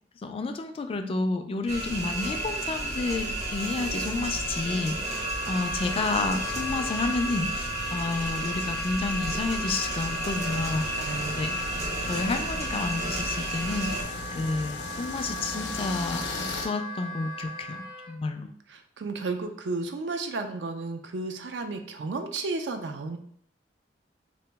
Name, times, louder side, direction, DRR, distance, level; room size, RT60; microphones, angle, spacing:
voice 1, 0.2-10.9 11.2-11.7 12.1-18.5, left 3 dB, 30° left, 7 dB, 0.3 m, -30 dB
sound 1, 1.7-14.0, right 1 dB, 40° right, 0.7 m, -32 dB
Wind instrument woodwind instrument, 4.9-18.1, equal, 55° right, 1.3 m, -38 dB
sound 2, 10.4-16.7, left 3 dB, 85° left, 0.5 m, -37 dB
voice 2, 11.0-11.4 18.4-23.2, right 3 dB, 75° right, 6 dB, 0.4 m, -33 dB
2.9 x 2.9 x 3.4 m, 0.63 s
head